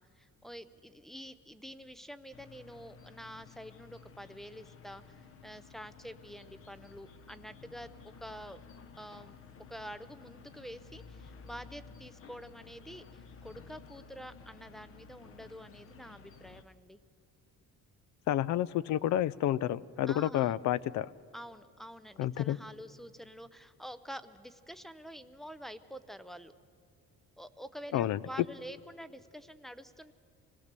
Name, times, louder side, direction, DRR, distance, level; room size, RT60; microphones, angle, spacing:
voice 1, 0.0-8.6 9.0-9.4 9.7-17.0 20.1-20.6 21.3-26.5 27.4-30.1, equal, ahead, 14 dB, 0.5 m, -47 dB
sound 1, 2.3-16.6, left 5 dB, 45° left, 0.9 m, -54 dB
voice 2, 18.3-21.1 22.2-22.6 27.9-28.2, left 12 dB, 65° left, 20 dB, 0.5 m, -30 dB
26.0 x 18.0 x 6.8 m, 2.2 s
cardioid pair, 165°, 31 cm